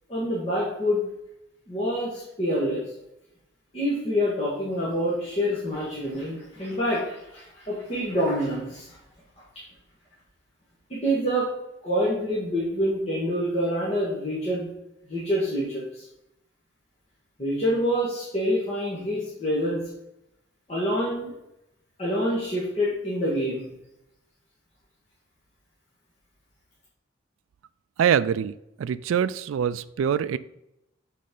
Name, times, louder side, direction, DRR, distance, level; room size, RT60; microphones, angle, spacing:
voice 1, 0.1-1.0 1.7-2.8 3.7-9.0 10.9-11.5 11.8-14.7 15.1-16.1 17.4-19.8 20.7-21.3 22.0-23.7, equal, 30° left, -8 dB, 1.8 m, -26 dB
voice 2, 28.0-30.4, right 8 dB, 85° right, 15 dB, 0.3 m, -24 dB
7.6 x 4.2 x 5.4 m, 0.86 s
head